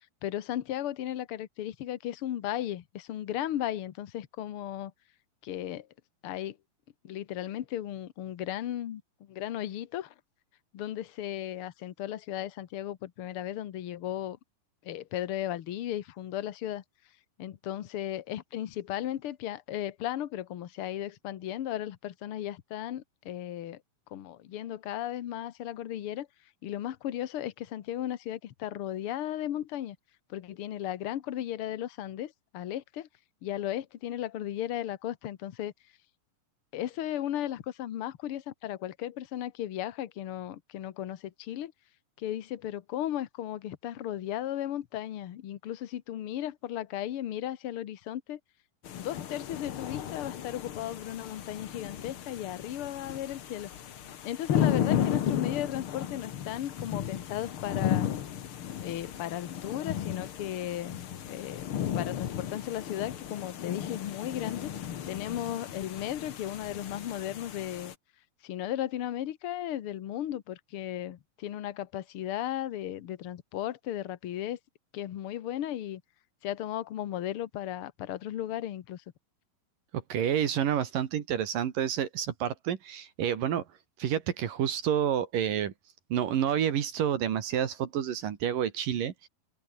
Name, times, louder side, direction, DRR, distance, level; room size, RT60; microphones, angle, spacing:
voice 1, 0.2-4.9 5.4-5.9 6.2-6.6 7.0-9.0 9.3-10.1 10.7-14.4 14.8-16.8 17.4-23.8 24.1-26.3 26.6-30.0 30.3-33.1 33.4-35.7 36.7-41.7 42.2-48.4 48.9-53.7 54.2-58.1 58.8-61.0 61.2-64.7 65.1-67.9 68.4-74.6 74.9-76.0 76.4-79.0, left 12 dB, 75° left, 1.3 m, -35 dB
sound 1, 48.8-67.9, left 9 dB, 55° left, 1.5 m, -34 dB
voice 2, 79.9-83.6 84.0-85.7 86.1-89.3, right 9 dB, 70° right, 3.4 m, -29 dB
omnidirectional pair, 4.2 m